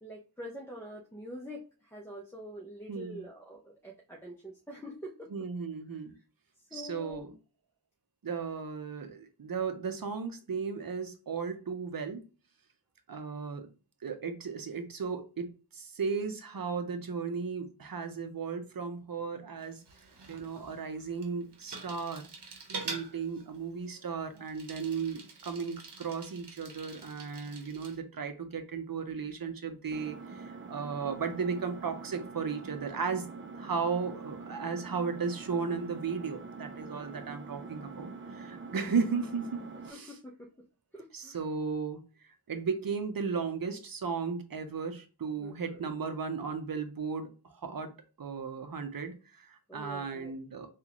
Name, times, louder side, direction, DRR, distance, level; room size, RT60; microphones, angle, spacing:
voice 1, 0.0-5.3 5.9-6.0 6.7-7.3 39.9-40.5 40.9-41.4 45.4-45.8 49.7-50.3, equal, 5° left, 0.8 m, -45 dB
voice 2, 2.9-3.2 5.3-6.1 6.7-7.3 8.2-12.2 13.1-13.7 14.0-19.8 20.3-22.3 22.8-33.3 33.6-40.1 41.1-42.0 42.5-47.9 48.2-50.7, right 5 dB, 60° right, 0.7 m, -35 dB
Bicycle, 19.6-28.0, right 4 dB, 90° right, 0.9 m, -46 dB
Engine, 29.9-39.9, right 4 dB, 30° right, 0.4 m, -45 dB
3.7 x 2.5 x 2.9 m
wide cardioid pair, 55°, 39 cm